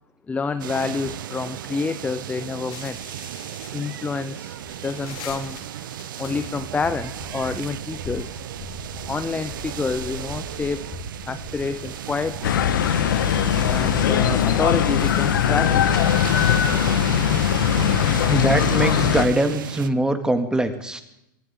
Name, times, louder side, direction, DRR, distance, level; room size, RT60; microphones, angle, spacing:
voice 1, 0.3-3.0 3.7-4.6 4.8-5.6 6.2-8.4 9.1-10.8 11.3-12.6 13.7-16.0, left 4 dB, 10° left, 12 dB, 0.7 m, -28 dB
sound 1, 0.6-19.9, right 11 dB, 70° right, 0.8 m, -35 dB
sound 2, 2.7-14.3, left 2 dB, 45° left, 3.8 m, -40 dB
sound 3, 12.4-19.3, left 9 dB, 70° left, 1.4 m, -20 dB
voice 2, 18.3-21.0, right 1 dB, 5° right, 8 dB, 2.2 m, -22 dB
24.5 x 14.0 x 3.8 m, 0.80 s
hypercardioid pair, 100°, 11 cm